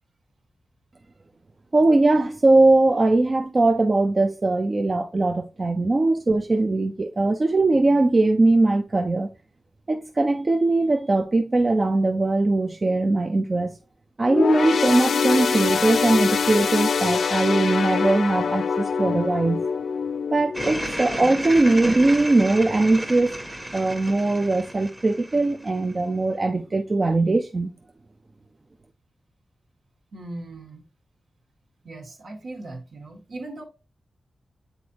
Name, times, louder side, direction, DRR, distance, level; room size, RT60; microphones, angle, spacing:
voice 1, 1.7-9.3 9.9-13.7 14.2-19.6 20.3-23.4 23.7-27.7, right 2 dB, 30° right, 0.4 m, -20 dB
sound 1, 14.3-22.0 22.4-22.6 23.5-23.6, left 6 dB, 75° left, 0.4 m, -25 dB
sound 2, 20.5-26.0, right 1 dB, 10° right, 0.9 m, -33 dB
voice 2, 30.1-30.8 31.8-33.6, right 2 dB, 70° right, 1.6 m, -38 dB
8.0 x 4.2 x 2.8 m
wide cardioid pair, 130°, 0 cm